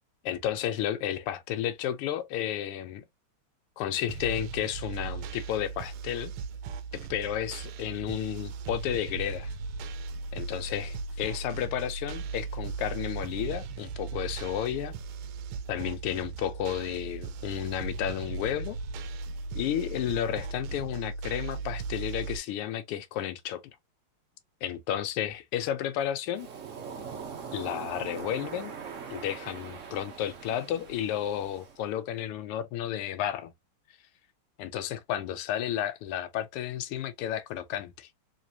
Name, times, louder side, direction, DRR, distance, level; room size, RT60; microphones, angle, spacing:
voice 1, 0.2-3.0 3.8-6.3 7.1-9.5 10.3-14.9 15.7-18.8 19.5-23.6 24.6-26.5 27.5-28.7 29.1-33.5 34.6-38.1, left 11 dB, 90° left, 1.6 m, -32 dB
sound 1, 4.1-22.4, right 4 dB, 80° right, 1.4 m, -37 dB
Waves surf, 26.3-31.8, right 6 dB, 65° right, 0.7 m, -42 dB
3.8 x 3.2 x 2.7 m
omnidirectional pair, 2.4 m